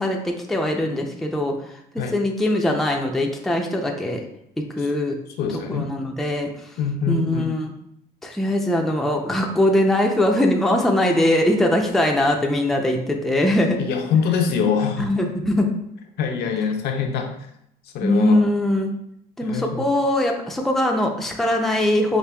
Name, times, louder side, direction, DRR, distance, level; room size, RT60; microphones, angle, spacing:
voice 1, 0.0-1.5 1.9-4.2 4.7-5.2 5.7-6.5 7.1-7.7 8.2-13.8 15.0-15.7 18.0-18.9 19.4-22.2, left 1 dB, ahead, 1 dB, 0.4 m, -21 dB
voice 2, 5.4-5.9 6.8-7.5 13.8-15.1 16.2-17.3 17.9-18.4 19.5-19.8, left 6 dB, 70° left, 3 dB, 0.5 m, -24 dB
5.0 x 2.4 x 2.2 m, 0.76 s
cardioid pair, 110°, 17 cm